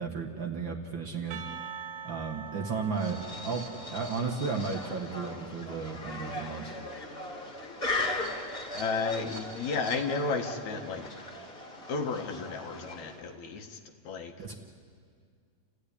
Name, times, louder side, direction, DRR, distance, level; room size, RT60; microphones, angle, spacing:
voice 1, 0.0-1.5 2.0-6.7 14.4-14.5, right 5 dB, 45° right, 1 dB, 1.9 m, -34 dB
Percussion / Church bell, 1.3-5.9, right 7 dB, 75° right, 2.3 m, -45 dB
sound 1, 2.9-13.3, left 2 dB, 20° left, 2.2 m, -38 dB
voice 2, 8.7-11.1 11.9-13.8 14.0-14.3, left 4 dB, 70° left, 4 dB, 2.7 m, -33 dB
29.5 x 15.5 x 9.9 m, 2.1 s
omnidirectional pair, 3.5 m